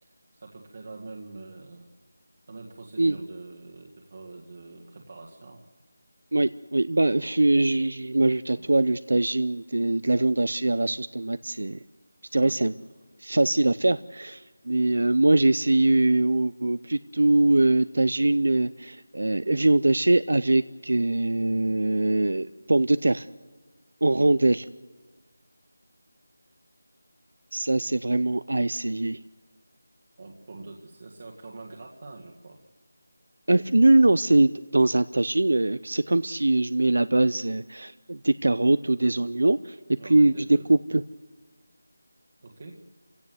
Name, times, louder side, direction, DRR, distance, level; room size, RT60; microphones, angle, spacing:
voice 1, 0.0-1.9 2.5-5.6 8.5-8.7 12.4-12.7 28.1-28.4 30.2-32.6 40.0-40.7 42.4-42.8, right 3 dB, 40° right, 0 dB, 1.9 m, -44 dB
voice 2, 6.3-11.8 12.3-12.7 13.2-23.3 24.0-24.7 27.5-29.2 33.5-39.8 40.1-41.0, right 2 dB, 75° right, 15 dB, 0.6 m, -22 dB
26.0 x 17.0 x 8.0 m, 1.4 s
figure-of-eight pair, 175°, 0 cm